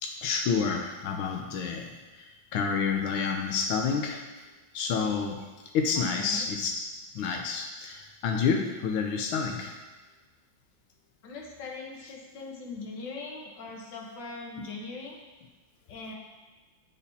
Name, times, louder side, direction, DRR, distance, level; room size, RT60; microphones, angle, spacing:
voice 1, 0.0-4.2 4.7-5.5 5.7-6.9 7.1-9.8, left 5 dB, 90° left, 3 dB, 1.5 m, -29 dB
voice 2, 5.9-6.5 11.2-15.2 15.9-16.1, left 3 dB, 65° left, -1 dB, 1.7 m, -40 dB
10.0 x 4.2 x 2.7 m, 1.3 s
omnidirectional pair, 2.2 m